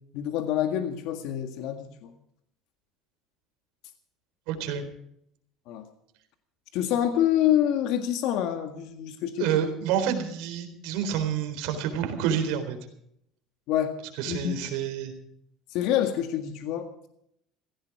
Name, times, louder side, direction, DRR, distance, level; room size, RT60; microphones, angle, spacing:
voice 1, 0.1-2.1 5.7-5.8 6.7-9.6 13.7-14.0 14.3-14.5 15.7-17.1, left 11 dB, 65° left, 7 dB, 1.8 m, -27 dB
voice 2, 4.5-4.8 9.4-12.8 14.2-15.1, right 8 dB, 75° right, 6 dB, 3.9 m, -28 dB
17.0 x 15.5 x 4.8 m, 0.74 s
cardioid pair, 150°, 0 cm